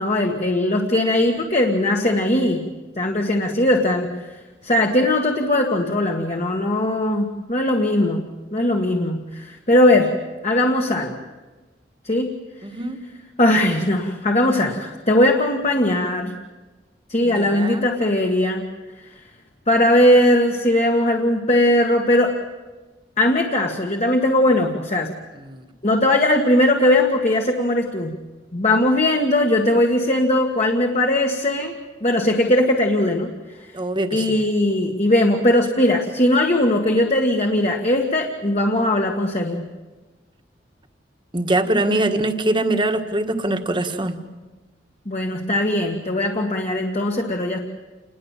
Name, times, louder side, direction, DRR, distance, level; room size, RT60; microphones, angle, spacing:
voice 1, 0.0-2.7 3.0-10.2 10.4-11.2 12.1-12.3 13.4-16.4 17.1-18.6 19.7-22.4 23.2-25.1 25.8-28.1 28.5-33.3 34.1-39.7 41.9-42.0 45.1-47.6, left 1 dB, 40° left, 2 dB, 1.9 m, -19 dB
voice 2, 12.6-13.0 17.2-17.8 25.4-25.6 33.7-34.4 41.3-44.2, right 1 dB, 30° right, 6 dB, 1.7 m, -23 dB
28.5 x 21.0 x 7.5 m, 1.3 s
head